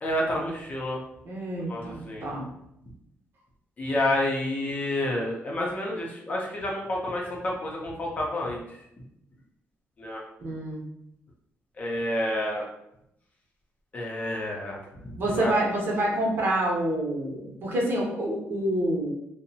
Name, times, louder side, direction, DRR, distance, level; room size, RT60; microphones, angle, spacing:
voice 1, 0.0-1.0 1.7-2.3 3.8-8.8 10.0-10.2 11.8-12.6 13.9-14.8 15.3-15.5, left 1 dB, 30° left, -2 dB, 0.6 m, -29 dB
voice 2, 1.2-2.5 10.4-10.8 15.2-19.1, right 1 dB, 50° right, -2 dB, 0.8 m, -27 dB
2.7 x 2.0 x 2.7 m, 0.79 s
cardioid pair, 130°, 5 cm